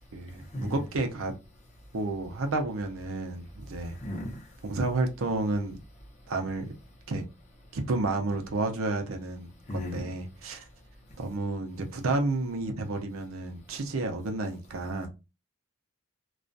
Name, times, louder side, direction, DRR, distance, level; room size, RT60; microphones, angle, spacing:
voice 1, 0.1-1.3 1.9-4.0 4.7-5.8 6.3-6.7 7.1-7.2 7.7-9.5 9.7-10.7 11.2-15.1, right 2 dB, 90° right, 0.6 m, -31 dB
voice 2, 4.0-4.3 9.7-10.0, left 1 dB, 35° left, 0.7 m, -34 dB
2.3 x 2.2 x 2.5 m
head